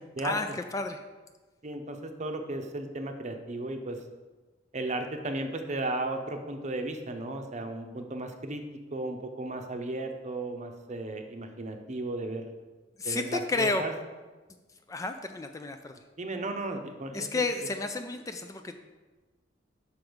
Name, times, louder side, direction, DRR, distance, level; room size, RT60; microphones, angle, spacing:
voice 1, 0.2-1.0 13.0-13.8 14.9-16.0 17.1-18.9, left 3 dB, 20° left, 7 dB, 0.3 m, -31 dB
voice 2, 1.6-4.0 4.7-8.6 8.9-12.5 13.0-13.9 16.2-17.3, right 2 dB, 40° right, 5 dB, 0.7 m, -35 dB
5.8 x 5.0 x 6.1 m, 1.3 s
head